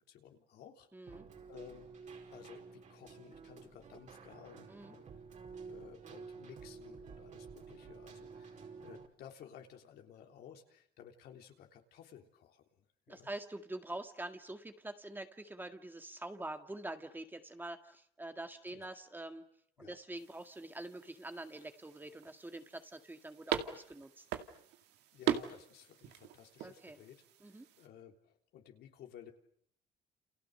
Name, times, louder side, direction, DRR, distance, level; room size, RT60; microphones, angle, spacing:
voice 1, 0.1-1.2 1.5-5.1 5.6-13.3 18.7-18.9 19.8-20.0 25.1-27.2 27.4-29.3, left 9 dB, 70° left, 3 dB, 3.6 m, -56 dB
voice 2, 0.9-1.3 4.7-5.0 13.1-19.4 19.8-24.2 26.6-27.0 27.4-27.7, right 2 dB, 10° right, 7 dB, 1.9 m, -45 dB
Keyboard (musical), 1.1-9.1, right 5 dB, 45° right, 4.8 m, -51 dB
sound 1, 20.2-27.9, right 10 dB, 80° right, 2.2 m, -41 dB
29.0 x 29.0 x 6.7 m, 0.67 s
cardioid pair, 110°, 17 cm